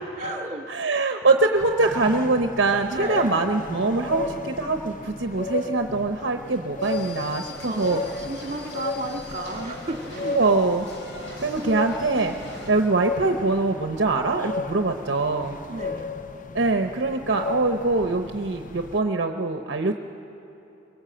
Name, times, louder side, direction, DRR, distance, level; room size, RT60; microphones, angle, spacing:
voice 1, 0.2-0.7 2.9-3.4 7.4-10.4 15.7-16.0, right 2 dB, 35° right, 3 dB, 1.8 m, -33 dB
voice 2, 0.7-8.0 10.3-10.9 11.4-12.3 12.7-15.6 16.5-19.9, right 3 dB, 65° right, 5 dB, 0.8 m, -23 dB
sound 1, 1.6-19.0, left 3 dB, 40° left, 0.7 m, -35 dB
sound 2, 6.8-12.7, left 2 dB, 85° left, 3.7 m, -40 dB
23.0 x 19.0 x 7.8 m, 2.8 s
head